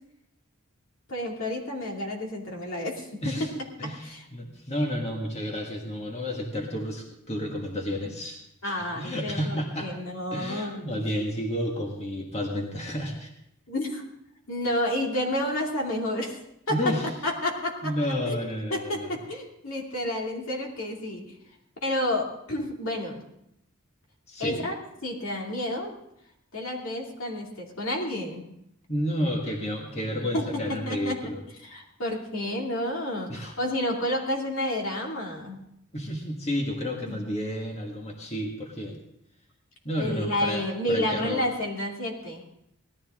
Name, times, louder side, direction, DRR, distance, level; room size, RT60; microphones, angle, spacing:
voice 1, 1.1-3.2 3.6-3.7 4.0-4.2 8.6-11.0 13.7-14.0 14.5-16.4 16.7-16.9 17.2-17.9 18.3-21.3 21.8-23.2 24.4-24.7 25.0-25.9 26.5-28.5 30.3-31.2 31.6-35.6 37.1-37.2 40.0-42.4, left 1 dB, 70° left, -1 dB, 2.6 m, -30 dB
voice 2, 3.8-9.9 10.3-13.3 16.7-17.1 17.8-19.1 24.3-24.6 28.9-31.4 33.3-33.5 35.9-39.0 39.9-41.4, equal, 30° left, 0 dB, 1.7 m, -31 dB
18.0 x 12.5 x 3.7 m, 0.79 s
head